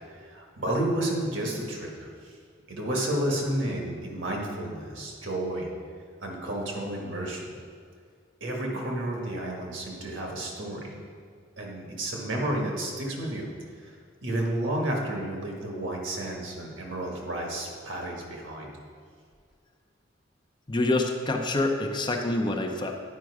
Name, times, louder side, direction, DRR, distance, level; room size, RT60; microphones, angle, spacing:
voice 1, 0.2-2.4 2.7-5.7 6.2-7.5 8.4-10.9 11.6-13.5 13.8-13.9 14.2-18.7, right 1 dB, 80° right, 0 dB, 1.6 m, -31 dB
voice 2, 20.7-22.9, left 2 dB, 25° left, 3 dB, 0.6 m, -26 dB
9.2 x 5.2 x 4.8 m, 2.1 s
head